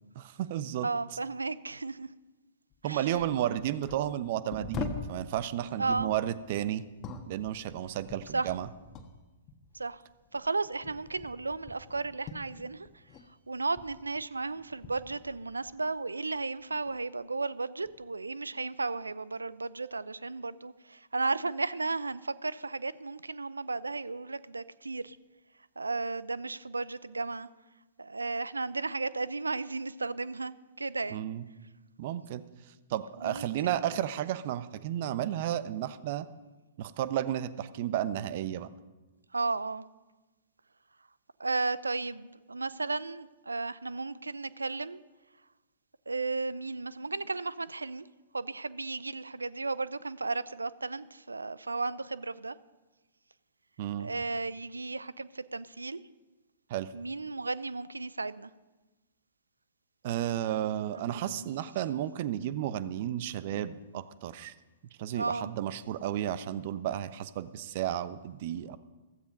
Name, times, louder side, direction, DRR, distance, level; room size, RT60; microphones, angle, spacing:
voice 1, 0.1-0.9 2.8-6.8 7.3-8.7 31.1-31.4 32.0-32.4 32.9-36.3 36.8-38.7 53.8-54.1 56.7-56.9 60.0-64.5 65.0-68.8, right 11 dB, 50° right, 0.9 m, -32 dB
voice 2, 0.8-2.1 2.8-3.1 5.8-6.1 8.3-8.5 9.7-10.0 10.3-12.9 13.5-25.2 25.8-27.5 28.0-31.3 33.2-33.9 39.3-39.8 41.4-45.0 46.1-48.1 48.3-52.5 54.0-56.0 56.9-58.5 60.9-61.5 65.1-65.5, right 3 dB, 80° right, 0.6 m, -34 dB
sound 1, 2.7-2.9 3.2-5.2 5.8-9.2 9.5-13.3 13.6-15.9 16.3-17.1 17.8-18.0, left 5 dB, 25° left, 1.6 m, -44 dB
15.5 x 14.0 x 5.3 m
figure-of-eight pair, 110°, 0 cm